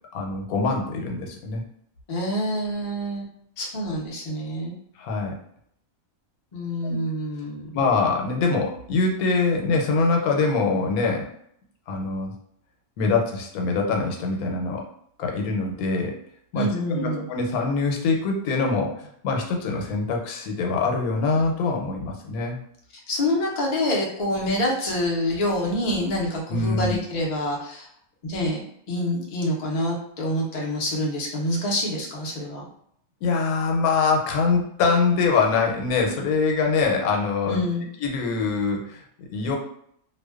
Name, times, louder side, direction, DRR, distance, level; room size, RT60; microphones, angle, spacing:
voice 1, 0.1-1.6 5.0-5.4 6.8-7.0 7.7-11.3 11.9-12.3 13.0-14.8 15.2-16.1 16.5-22.6 26.5-27.0 33.2-37.6 38.0-39.6, left 4 dB, 90° left, 1 dB, 1.1 m, -24 dB
voice 2, 2.1-3.2 3.6-4.7 6.5-7.7 16.5-17.2 23.1-27.9 28.2-32.6 37.5-37.8, left 1 dB, 60° left, -2 dB, 0.4 m, -26 dB
2.4 x 2.1 x 2.3 m, 0.69 s
omnidirectional pair, 1.5 m